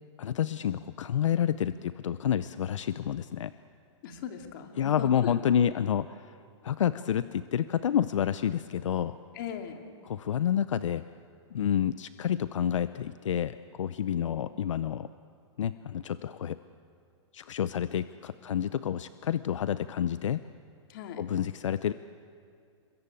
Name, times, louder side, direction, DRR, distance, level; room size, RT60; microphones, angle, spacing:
voice 1, 0.2-3.5 4.8-6.3 6.6-9.2 10.1-11.0 11.5-15.1 15.6-16.6 17.3-20.4 21.2-21.9, left 9 dB, 80° left, 13 dB, 0.7 m, -29 dB
voice 2, 4.0-5.8 9.3-9.9 14.1-14.4 20.9-21.3, left 8 dB, 45° left, 4 dB, 2.7 m, -40 dB
28.5 x 22.5 x 8.5 m, 2.3 s
hypercardioid pair, 160°, 16 cm